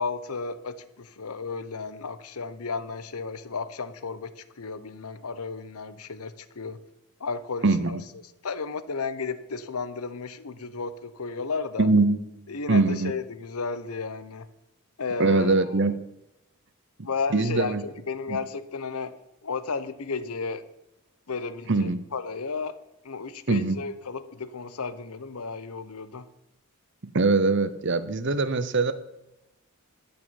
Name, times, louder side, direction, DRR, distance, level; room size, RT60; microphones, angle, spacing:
voice 1, 0.0-6.8 7.2-8.0 8.4-11.9 12.5-14.5 15.0-15.9 17.0-19.1 19.4-20.7 21.3-22.8 23.0-26.3, left 4 dB, 85° left, 13 dB, 0.9 m, -33 dB
voice 2, 7.6-8.0 11.8-13.1 15.2-15.9 17.3-17.8 18.3-18.4 21.7-22.0 23.5-23.8 27.1-28.9, right 3 dB, 55° right, 13 dB, 0.8 m, -23 dB
13.0 x 5.7 x 8.7 m, 0.91 s
head